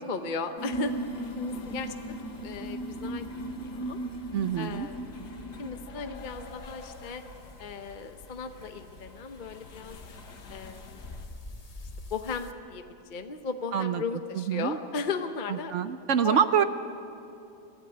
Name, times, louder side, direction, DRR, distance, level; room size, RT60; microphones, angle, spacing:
voice 1, 0.0-2.2 2.4-4.0 4.6-7.2 7.6-10.0 10.5-11.2 12.1-15.7 16.2-16.4, left 4 dB, 45° left, 7 dB, 0.6 m, -36 dB
sound 1, 0.6-7.0 7.3-7.8 8.6-8.7 9.5-9.6 10.2-10.4, right 1 dB, 65° left, 3.0 m, -38 dB
sound 2, 0.9-11.3, left 4 dB, 80° left, 1.9 m, -49 dB
voice 2, 4.3-4.9 13.7-14.0 14.5-14.8 15.7-16.6, right 8 dB, 60° right, 11 dB, 0.8 m, -25 dB
sound 3, 6.1-12.5, left 2 dB, 25° left, 1.0 m, -48 dB
23.0 x 14.5 x 9.6 m, 2.7 s
omnidirectional pair, 1.8 m